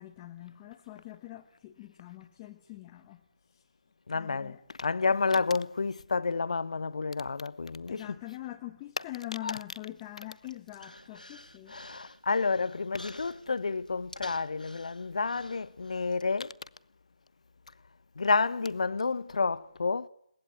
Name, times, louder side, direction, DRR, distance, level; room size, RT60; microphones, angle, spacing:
voice 1, 0.0-3.2 3.5-3.6 4.1-4.6 5.2-5.3 7.9-11.7, left 16 dB, 15° left, 1.5 m, -43 dB
voice 2, 4.1-8.1 9.4-9.6 11.7-16.5 18.2-20.1, left 4 dB, 50° left, 1.1 m, -30 dB
Human voice, 10.0-16.2, left 1 dB, 80° left, 3.1 m, -50 dB
30.0 x 19.0 x 9.6 m
figure-of-eight pair, 150°, 4 cm